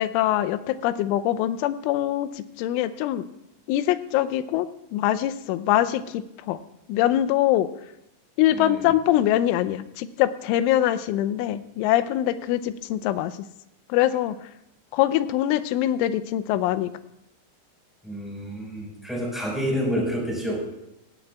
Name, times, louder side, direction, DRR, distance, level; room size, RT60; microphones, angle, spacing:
voice 1, 0.0-3.3 3.7-6.6 6.9-7.7 8.4-13.4 13.9-14.4 14.9-16.9, left 13 dB, 90° left, 14 dB, 3.1 m, -23 dB
voice 2, 8.5-8.9 18.0-20.6, equal, ahead, -2 dB, 3.8 m, -29 dB
16.5 x 16.0 x 2.3 m, 0.86 s
omnidirectional pair, 5.5 m